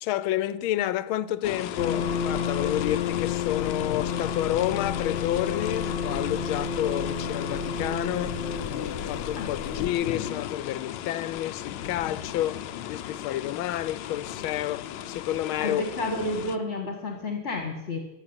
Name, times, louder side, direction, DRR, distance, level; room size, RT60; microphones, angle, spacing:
voice 1, 0.0-8.4 8.7-15.8, left 13 dB, 90° left, 1.5 m, -30 dB
sound 1, 1.4-16.6, left 11 dB, 75° left, 1.3 m, -36 dB
sound 2, 1.8-9.9, left 6 dB, 55° left, 1.5 m, -31 dB
voice 2, 15.6-18.0, left 2 dB, 35° left, 1.9 m, -30 dB
15.0 x 7.5 x 9.7 m
omnidirectional pair, 2.2 m